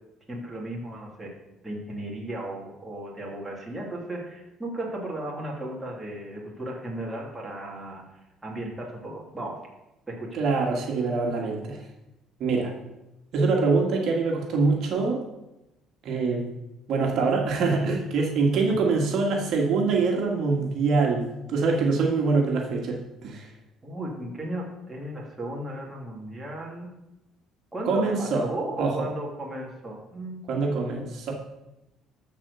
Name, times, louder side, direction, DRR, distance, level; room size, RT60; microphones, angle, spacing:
voice 1, 0.3-1.3 1.6-8.1 8.4-9.6 10.1-10.4 23.8-26.9 27.7-30.4, right 1 dB, 10° right, -3 dB, 2.6 m, -35 dB
voice 2, 10.3-11.8 12.4-12.7 13.3-15.2 16.0-16.5 16.9-23.5 27.9-28.4 28.8-29.0 30.5-31.3, right 4 dB, 55° right, 0 dB, 1.8 m, -24 dB
13.5 x 4.6 x 6.9 m, 0.95 s
cardioid pair, 135°, 0 cm